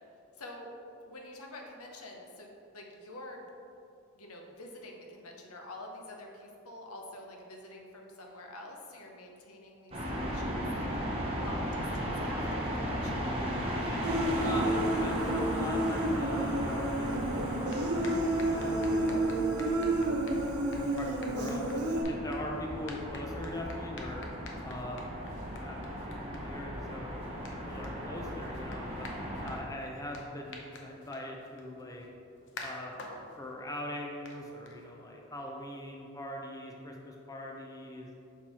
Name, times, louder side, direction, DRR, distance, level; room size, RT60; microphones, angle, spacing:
voice 1, 0.3-0.7 1.0-3.5 4.1-10.9 11.4-13.3, left 1 dB, 85° left, 1 dB, 0.9 m, -47 dB
sound 1, 9.9-29.6, equal, 25° right, 0.9 m, -36 dB
Human voice, 14.0-22.0, right 1 dB, 90° right, 0.8 m, -31 dB
voice 2, 14.3-19.8 20.3-24.2 24.6-25.1 25.6-25.8 26.1-27.1 27.5-29.1 29.4-32.1 32.6-32.9 33.4-38.2, left 1 dB, 15° left, 0 dB, 0.5 m, -42 dB
sound 2, 17.4-35.2, left 3 dB, 60° left, 0.8 m, -51 dB
6.1 x 4.4 x 4.2 m, 2.7 s
head